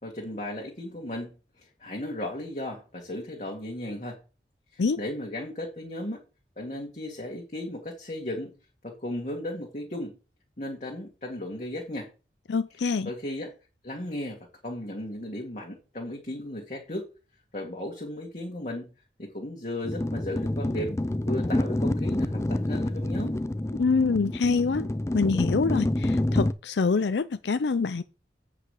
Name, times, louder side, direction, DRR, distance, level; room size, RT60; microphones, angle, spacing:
voice 1, 0.0-1.3 1.6-4.2 4.7-6.2 6.6-8.5 8.8-10.1 10.6-12.1 13.1-13.5 13.8-17.1 17.5-18.9 19.2-21.0 21.3-23.4, left 1 dB, 40° left, 1.9 m, -35 dB
voice 2, 12.5-13.1 23.8-24.9 25.1-28.0, left 4 dB, 80° left, 0.5 m, -25 dB
sound 1, 19.9-26.5, left 1 dB, 15° left, 0.4 m, -28 dB
8.2 x 5.0 x 6.4 m
head